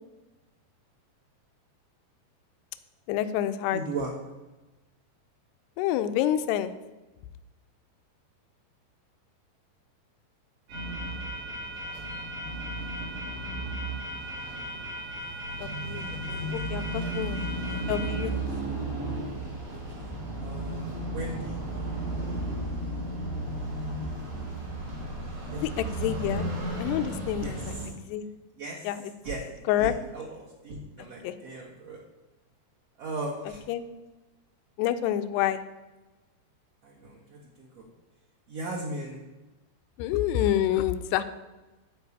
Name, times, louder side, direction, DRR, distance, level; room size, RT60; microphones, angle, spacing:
voice 1, 3.1-3.8 5.8-6.7 15.6-16.0 16.3-17.4 17.9-18.3 25.5-26.5 26.8-28.3 28.8-29.0 29.7-29.9 31.2-31.3 33.7-33.8 34.8-35.6 40.0-41.2, left 11 dB, 85° left, 11 dB, 2.6 m, -28 dB
voice 2, 3.7-4.1 15.9-17.2 17.6-18.4 19.7-20.1 20.4-21.6 25.5-25.8 26.2-26.3 27.4-27.9 28.6-28.9 29.2-29.4 29.8-32.0 33.0-33.6 36.8-37.9 38.5-39.2, right 2 dB, 60° right, -2 dB, 1.6 m, -38 dB
sound 1, 10.7-27.9, right 1 dB, 90° right, 6.5 m, -34 dB
12.5 x 4.8 x 8.5 m, 1.1 s
omnidirectional pair, 4.9 m